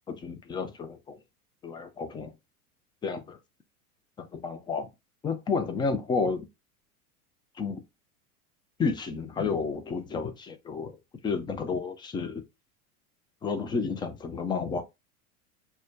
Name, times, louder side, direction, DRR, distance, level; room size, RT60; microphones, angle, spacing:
voice 1, 0.1-1.2 1.6-2.3 3.0-3.4 4.2-4.9 5.2-6.5 7.6-7.8 8.8-10.9 11.2-12.4 13.4-14.8, left 5 dB, 10° left, 0.4 m, -31 dB
6.1 x 2.2 x 2.5 m
hypercardioid pair, 95°, 45 cm